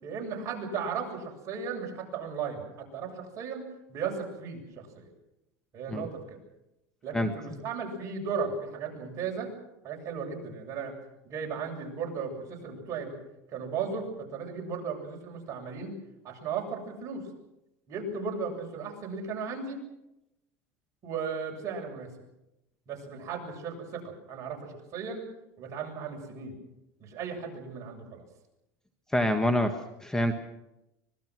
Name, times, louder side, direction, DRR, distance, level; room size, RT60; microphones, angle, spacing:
voice 1, 0.0-3.6 3.9-4.6 4.9-5.1 5.7-6.4 7.0-9.5 9.8-10.9 11.2-13.2 13.5-15.9 16.2-17.2 17.9-19.8 21.0-22.1 22.9-25.2 25.6-26.6 27.0-28.2, right 5 dB, 40° right, 1 dB, 7.7 m, -36 dB
voice 2, 7.1-7.6 29.1-30.3, equal, 5° left, 7 dB, 1.6 m, -27 dB
25.5 x 21.0 x 6.3 m, 0.88 s
supercardioid pair, 135°, 8 cm